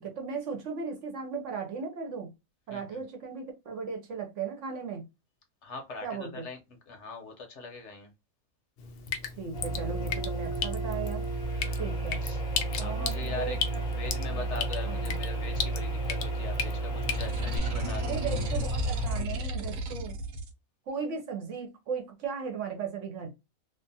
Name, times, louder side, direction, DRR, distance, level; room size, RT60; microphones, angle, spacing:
voice 1, 0.0-2.3 2.7-5.0 6.0-6.5 9.2-11.3 11.8-12.2 12.8-14.5 14.8-15.2 18.0-20.2 20.9-23.3, right 5 dB, 60° right, 1.0 m, -37 dB
voice 2, 2.7-3.0 5.6-8.1 11.5-11.9 12.2-12.4 12.8-13.6 13.8-18.2, left 4 dB, 60° left, 0.9 m, -42 dB
Drip, 8.8-17.6, left 6 dB, 80° left, 0.5 m, -37 dB
sound 1, 9.5-19.2, right 2 dB, 35° left, 0.7 m, -32 dB
sound 2, 17.1-20.5, equal, 90° right, 1.1 m, -34 dB
2.5 x 2.4 x 2.6 m
omnidirectional pair, 1.5 m